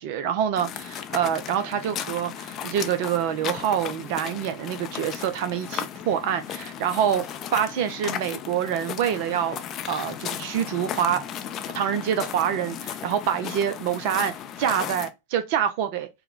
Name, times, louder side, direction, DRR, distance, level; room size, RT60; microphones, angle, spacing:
voice 1, 0.0-9.6 9.9-11.2 11.7-16.1, right 9 dB, 45° right, 0.5 m, -26 dB
sound 1, 0.6-15.1, left 9 dB, 30° left, 0.4 m, -35 dB
4.4 x 2.1 x 3.6 m
figure-of-eight pair, 90°, 0 cm